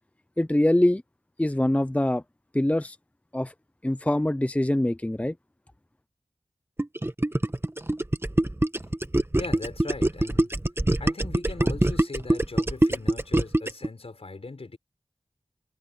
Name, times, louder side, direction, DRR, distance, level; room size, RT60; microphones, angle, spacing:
voice 1, 0.4-1.0 1.4-2.2 2.5-3.0 3.3-3.5 3.8-5.3, left 1 dB, 15° left, 0.7 m, -23 dB
Gurgling, 6.8-13.9, right 1 dB, 20° right, 1.5 m, -24 dB
voice 2, 9.4-10.5 11.0-14.8, left 3 dB, 65° left, 4.8 m, -39 dB
wide cardioid pair, 50°, 11 cm